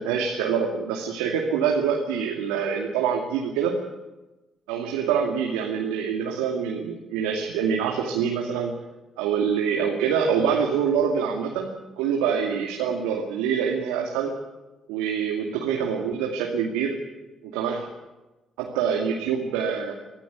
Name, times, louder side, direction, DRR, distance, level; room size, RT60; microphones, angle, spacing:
voice 1, 0.0-3.8 4.7-8.7 9.2-11.7 12.0-14.3 14.9-17.0 17.4-17.8 18.6-19.9, right 7 dB, 80° right, 1 dB, 2.4 m, -25 dB
24.0 x 14.5 x 9.6 m, 1.1 s
hypercardioid pair, 50°, 0 cm